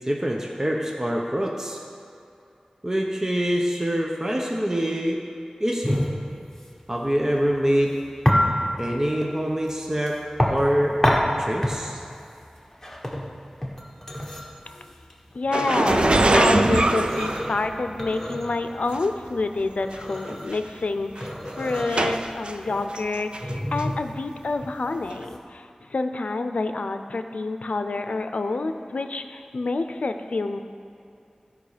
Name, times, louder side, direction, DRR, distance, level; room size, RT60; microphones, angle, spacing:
voice 1, 0.1-1.8 2.8-5.2 5.6-6.0 6.9-8.0 8.8-10.2 10.5-11.0 11.4-12.0, equal, 25° right, 0 dB, 0.9 m, -25 dB
sound 1, 5.8-25.4, equal, 10° left, 1.5 m, -28 dB
voice 2, 15.3-30.6, left 3 dB, 85° left, 7 dB, 0.6 m, -28 dB
sound 2, 15.5-18.1 18.9-19.0 19.9-20.0 20.3-20.6 21.2-22.5 23.0-23.5 23.8-23.9 25.1-25.2, right 2 dB, 50° right, 0.5 m, -22 dB
15.5 x 5.3 x 5.1 m, 2.6 s
wide cardioid pair, 60°, 2 cm